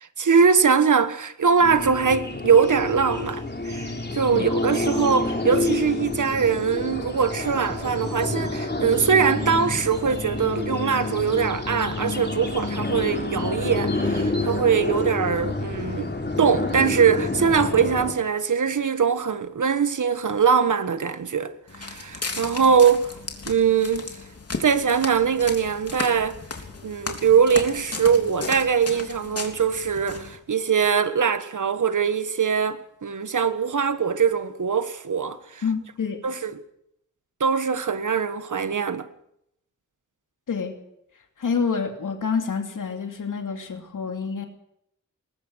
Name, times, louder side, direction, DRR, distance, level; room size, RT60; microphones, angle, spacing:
voice 1, 0.2-16.1 16.4-21.5 21.8-23.1 23.5-24.1 24.6-26.4 26.8-35.6 36.2-36.5 37.4-39.1, right 6 dB, 75° right, 1.5 m, -22 dB
sound 1, 1.6-18.1, left 2 dB, 35° left, 3.9 m, -28 dB
Walk footsteps, 21.7-30.4, left 3 dB, 50° left, 3.5 m, -35 dB
voice 2, 35.6-36.2 40.5-40.7 41.4-44.5, left 5 dB, 90° left, 2.8 m, -27 dB
21.0 x 19.0 x 6.4 m
wide cardioid pair, 65°, 31 cm